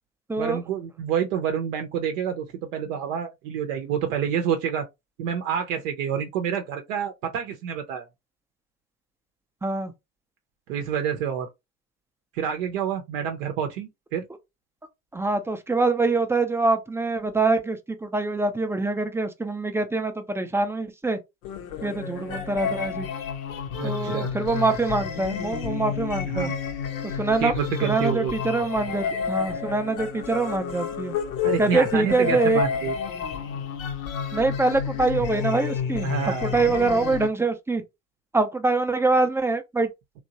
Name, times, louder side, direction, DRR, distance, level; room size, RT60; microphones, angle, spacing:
voice 1, 0.4-2.5 2.7-4.8 5.2-8.1 10.7-11.5 12.3-14.3 22.3-22.4 23.8-24.3 26.2-26.6 27.4-28.3 31.4-33.0 36.0-36.5, right 8 dB, 65° right, 0.6 m, -28 dB
voice 2, 9.6-9.9 15.1-21.2 21.8-23.1 23.8-26.5 27.2-27.5 27.8-31.1 31.6-32.6 34.3-36.1 36.4-37.8 38.3-39.9, right 3 dB, 5° right, 0.4 m, -24 dB
sound 1, 21.4-37.3, left 7 dB, 70° left, 0.7 m, -30 dB
2.9 x 2.2 x 2.7 m
figure-of-eight pair, 60°, 42 cm